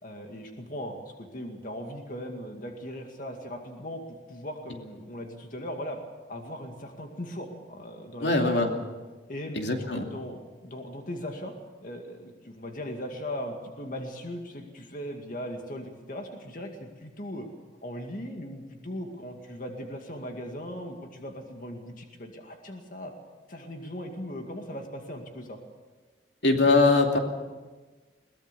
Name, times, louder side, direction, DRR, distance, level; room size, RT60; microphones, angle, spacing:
voice 1, 0.0-6.0 6.3-8.7 9.3-10.4 10.6-11.5 11.8-17.5 17.8-23.1 23.5-25.6, equal, 50° left, 3 dB, 2.2 m, -38 dB
voice 2, 8.2-8.7 9.5-10.1 26.4-27.2, left 3 dB, 80° left, 3 dB, 2.7 m, -22 dB
22.0 x 19.5 x 6.9 m, 1.3 s
head